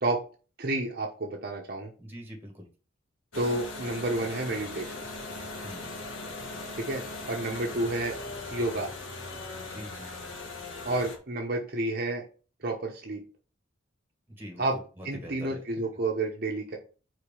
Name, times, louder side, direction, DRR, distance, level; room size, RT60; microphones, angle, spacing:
voice 1, 0.6-1.9 3.3-5.0 6.7-8.2 8.5-8.9 10.8-12.2 12.6-13.2 14.6-14.8 15.0-16.8, right 2 dB, 50° right, 0 dB, 1.0 m, -30 dB
voice 2, 2.0-2.6 5.6-6.0 9.7-10.1 14.4-14.6 15.0-15.6, equal, 10° right, 1 dB, 1.8 m, -43 dB
sound 1, 3.3-11.2, left 2 dB, 80° left, 1.4 m, -39 dB
5.0 x 4.0 x 5.5 m, 0.37 s
head